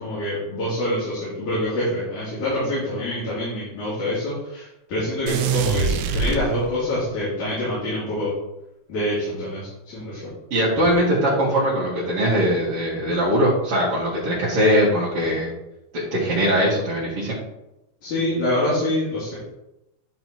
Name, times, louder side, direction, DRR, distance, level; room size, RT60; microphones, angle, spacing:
voice 1, 0.0-8.3 8.9-10.2 18.0-19.4, left 1 dB, 80° left, -10 dB, 4.4 m, -26 dB
sound 1, 5.3-7.0, right 6 dB, 85° right, 2.0 m, -24 dB
voice 2, 10.5-15.5 15.9-17.4, equal, 55° right, -7 dB, 2.7 m, -21 dB
11.5 x 4.0 x 4.5 m, 0.91 s
omnidirectional pair, 3.3 m